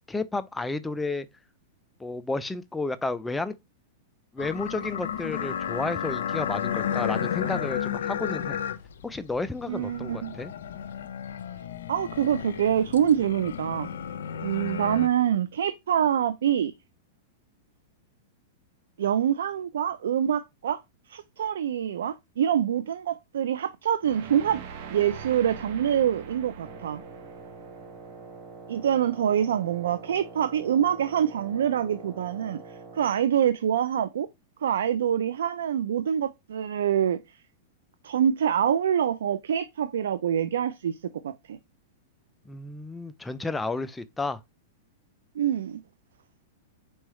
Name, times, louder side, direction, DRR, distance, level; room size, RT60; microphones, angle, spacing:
voice 1, 0.1-1.3 2.0-3.5 4.3-8.6 9.0-10.5 42.5-44.4, left 3 dB, 10° left, 0.3 m, -32 dB
sound 1, 4.4-15.1, left 9 dB, 80° left, 0.5 m, -33 dB
voice 2, 9.7-10.3 11.9-13.9 14.4-16.7 19.0-20.8 21.1-24.6 24.9-27.0 28.7-32.6 32.9-34.3 34.6-37.2 38.0-41.0 41.2-41.6 45.4-45.8, right 9 dB, 80° right, 0.3 m, -25 dB
sound 2, 24.0-29.1, right 6 dB, 55° right, 0.7 m, -43 dB
Wind instrument woodwind instrument, 26.6-33.3, right 4 dB, 30° right, 1.2 m, -45 dB
4.5 x 3.1 x 3.0 m
hypercardioid pair, 135°, 0 cm